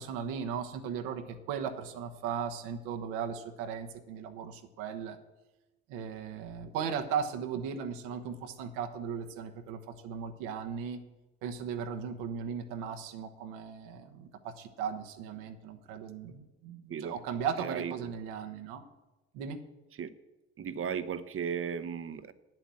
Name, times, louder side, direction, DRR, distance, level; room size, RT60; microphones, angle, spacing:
voice 1, 0.0-5.2 5.9-11.0 11.4-18.8 19.3-19.6, right 7 dB, 80° right, 5 dB, 1.2 m, -37 dB
voice 2, 17.6-17.9 20.0-20.1 20.6-22.3, right 7 dB, 45° right, 14 dB, 0.9 m, -35 dB
9.3 x 7.5 x 7.7 m, 1.1 s
hypercardioid pair, 55°, 31 cm